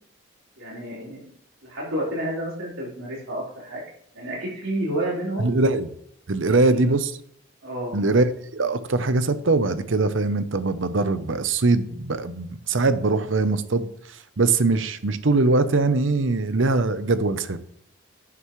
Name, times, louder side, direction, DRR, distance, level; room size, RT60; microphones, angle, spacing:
voice 1, 0.6-1.3 1.7-3.8 4.1-5.5 6.4-6.9 7.6-8.0, right 1 dB, 90° right, -6 dB, 4.3 m, -30 dB
voice 2, 5.4-5.9 6.3-7.1 7.9-17.6, right 3 dB, 70° right, 12 dB, 0.8 m, -22 dB
11.5 x 9.7 x 3.2 m, 0.69 s
head